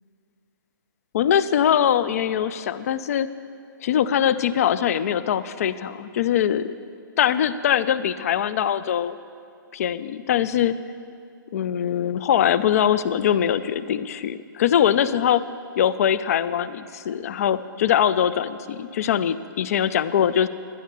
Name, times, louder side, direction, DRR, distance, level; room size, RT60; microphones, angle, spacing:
voice 1, 1.1-3.3 3.8-6.7 7.2-9.2 9.7-10.7 11.5-15.4 15.8-20.5, left 9 dB, 45° left, 14 dB, 0.4 m, -22 dB
11.0 x 10.5 x 6.6 m, 2.3 s
hypercardioid pair, 160°, 12 cm